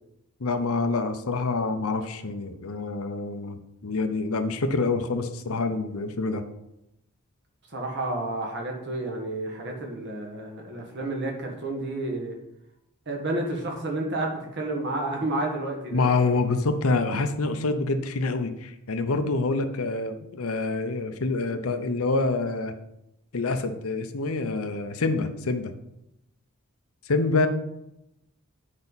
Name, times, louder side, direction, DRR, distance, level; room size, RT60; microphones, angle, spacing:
voice 1, 0.4-6.4 15.9-22.7 23.3-25.7 27.1-27.5, left 3 dB, 75° left, 8 dB, 0.8 m, -26 dB
voice 2, 7.7-12.4 13.1-16.0, right 2 dB, 50° right, 1 dB, 1.7 m, -30 dB
8.9 x 5.5 x 4.1 m, 0.86 s
head